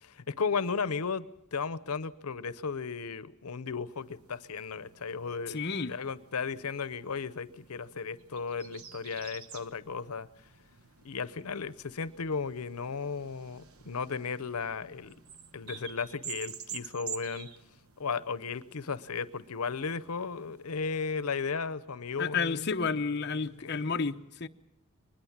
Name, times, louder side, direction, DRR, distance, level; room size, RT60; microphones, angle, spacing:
voice 1, 0.0-1.3 1.5-5.6 5.9-10.3 11.0-15.1 15.5-17.5 18.0-22.7 23.6-23.8, left 5 dB, 90° left, 15 dB, 0.8 m, -35 dB
sound 1, 3.9-21.5, right 7 dB, 75° right, 1.1 m, -49 dB
voice 2, 5.5-5.9 22.2-24.5, left 5 dB, 50° left, 6 dB, 0.8 m, -31 dB
23.0 x 20.5 x 7.3 m, 0.86 s
head